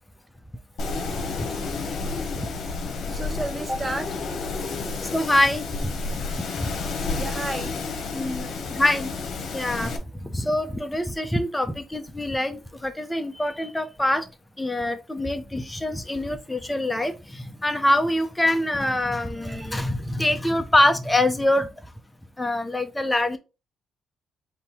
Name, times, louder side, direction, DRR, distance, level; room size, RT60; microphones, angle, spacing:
Wind, 0.8-10.0, left 4 dB, 65° left, 1.0 m, -30 dB
voice 1, 3.1-4.2 7.2-7.7 19.4-19.9, right 2 dB, 25° right, 0.5 m, -32 dB
voice 2, 5.0-6.2 6.6-6.7 8.1-9.1 9.4-14.3 14.6-21.9 22.4-23.4, left 1 dB, 10° left, 0.7 m, -25 dB
3.6 x 2.8 x 4.4 m
cardioid pair, 90°, 0 cm